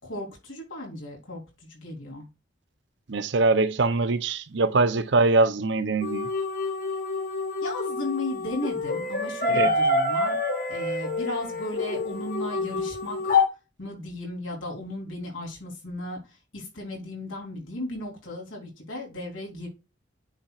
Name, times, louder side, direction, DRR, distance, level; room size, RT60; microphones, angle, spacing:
voice 1, 0.0-2.3 7.6-10.4 10.7-13.4 13.8-16.2 16.5-19.7, left 1 dB, 85° left, 3.7 m, -35 dB
voice 2, 3.1-6.3 9.5-9.7, right 3 dB, 65° right, 0.7 m, -23 dB
sound 1, 6.0-13.5, left 3 dB, 45° left, 1.4 m, -27 dB
10.0 x 4.3 x 2.4 m
head